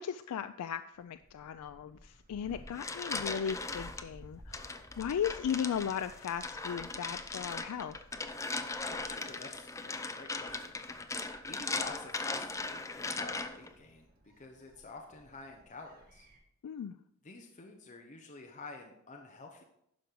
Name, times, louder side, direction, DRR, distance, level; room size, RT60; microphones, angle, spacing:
voice 1, 0.0-8.0 16.6-17.0, left 8 dB, 80° left, 10 dB, 0.3 m, -37 dB
Gull seagull, 0.9-16.4, equal, 40° right, 1.6 m, -58 dB
voice 2, 2.4-2.9 8.9-10.8 11.5-14.1 14.4-16.3 17.2-19.6, left 3 dB, 35° left, 2 dB, 0.9 m, -49 dB
sound 1, 2.5-4.0 4.5-13.7, left 3 dB, 15° left, 0.5 m, -39 dB
11.5 x 5.2 x 4.6 m, 0.77 s
head